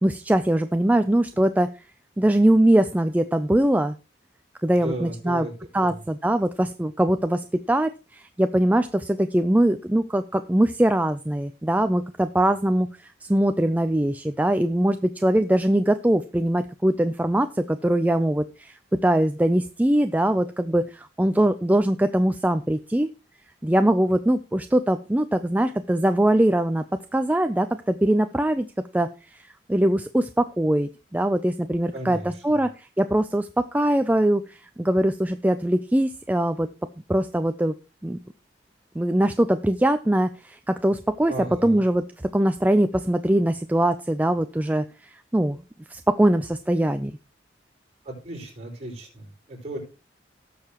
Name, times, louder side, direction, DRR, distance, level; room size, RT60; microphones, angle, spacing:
voice 1, 0.0-1.7 2.2-4.0 4.6-5.5 5.7-18.8 19.0-23.1 23.6-26.8 27.1-28.7 28.9-36.7 37.1-37.7 38.0-38.2 39.0-41.3 41.6-42.0 42.3-45.6 45.9-47.1, right 1 dB, 10° right, 9 dB, 0.4 m, -22 dB
voice 2, 4.7-5.5 5.8-6.0 31.9-32.6 41.3-41.9 48.0-49.8, right 1 dB, 35° right, -2 dB, 5.2 m, -35 dB
18.0 x 6.8 x 3.0 m, 0.31 s
head